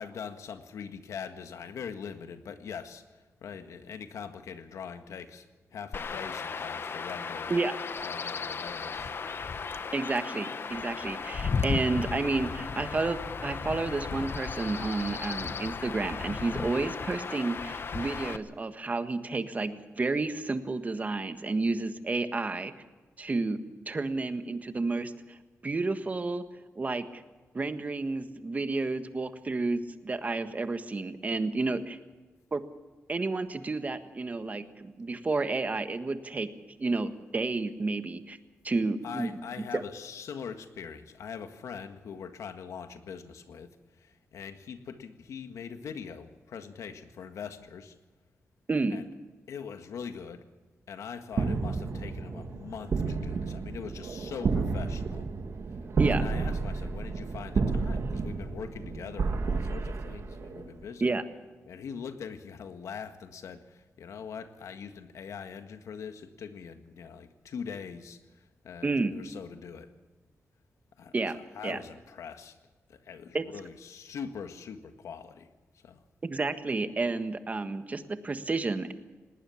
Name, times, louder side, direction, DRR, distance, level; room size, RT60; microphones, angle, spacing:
voice 1, 0.0-3.0 3.4-5.4 5.7-7.5 8.0-9.1 39.0-43.7 44.0-48.0 48.9-49.0 49.5-50.4 50.9-55.3 56.1-61.1 61.7-68.2 68.6-69.9 71.0-72.5 72.9-75.5 75.8-76.0, left 6 dB, 85° left, 8 dB, 1.7 m, -42 dB
Chirp tweet / Wind / Stream, 5.9-18.4, left 5 dB, 50° left, 1.1 m, -35 dB
voice 2, 9.9-22.7 23.2-23.6 23.9-25.4 25.6-26.4 26.7-27.2 27.5-32.0 32.5-32.6 33.1-36.5 36.8-38.4 38.6-39.3 39.7-39.8 48.7-49.0 56.0-56.2 61.0-61.2 68.8-69.1 71.1-71.4 71.6-71.8 73.3-73.4 76.2-78.9, right 3 dB, 30° right, 9 dB, 1.5 m, -31 dB
sound 1, 51.3-60.8, right 4 dB, 60° right, 1.8 m, -31 dB
19.5 x 18.5 x 7.2 m, 1.3 s
wide cardioid pair, 110°, 5 cm